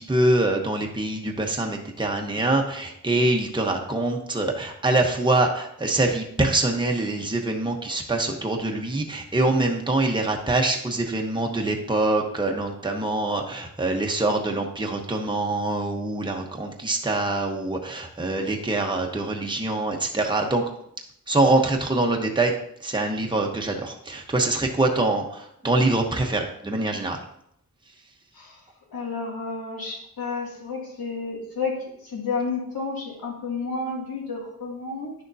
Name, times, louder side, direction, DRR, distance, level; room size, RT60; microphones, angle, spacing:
voice 1, 0.0-20.6 21.3-22.5 22.8-27.2, right 2 dB, 15° right, 1 dB, 0.9 m, -24 dB
voice 2, 28.9-35.1, left 4 dB, 85° left, -3 dB, 2.4 m, -31 dB
10.5 x 6.5 x 2.7 m, 0.73 s
wide cardioid pair, 135°, 35 cm